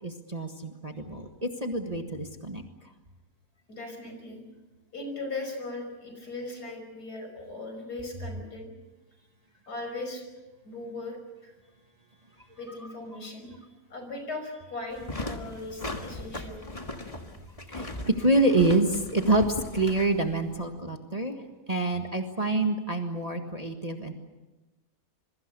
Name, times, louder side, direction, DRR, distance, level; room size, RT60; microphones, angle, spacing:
voice 1, 0.0-2.6 17.7-21.4 21.7-24.1, right 2 dB, 25° right, 4 dB, 1.6 m, -27 dB
voice 2, 3.7-4.4 4.9-8.7 9.7-10.2 10.6-11.2 11.4-11.5 12.6-13.5 13.9-16.6, left 2 dB, 65° left, 5 dB, 6.1 m, -38 dB
sound 1, 14.9-20.7, left 2 dB, 20° left, 1.8 m, -38 dB
26.5 x 23.0 x 6.8 m, 1.1 s
omnidirectional pair, 1.8 m